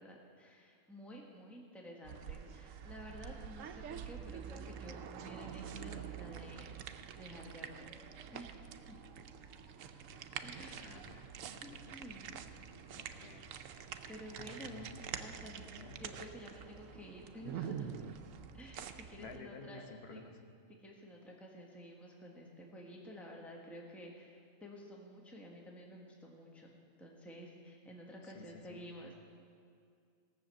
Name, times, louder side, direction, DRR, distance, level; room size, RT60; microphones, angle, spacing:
voice 1, 0.0-6.7 7.1-7.9 8.3-9.0 10.4-11.0 11.6-12.6 13.8-15.7 16.0-18.1 18.5-20.2 20.8-26.7 27.0-29.1, equal, ahead, -1 dB, 1.4 m, -51 dB
sound 1, 2.0-19.4, right 8 dB, 75° right, 1.0 m, -47 dB
sound 2, 6.8-18.2, equal, 30° right, 2.0 m, -64 dB
voice 2, 10.8-11.9 12.9-13.5 14.4-15.0 15.6-16.0 19.2-20.3 28.3-28.8, left 4 dB, 50° left, 5 dB, 1.2 m, -53 dB
16.5 x 6.6 x 7.7 m, 2.3 s
omnidirectional pair, 1.4 m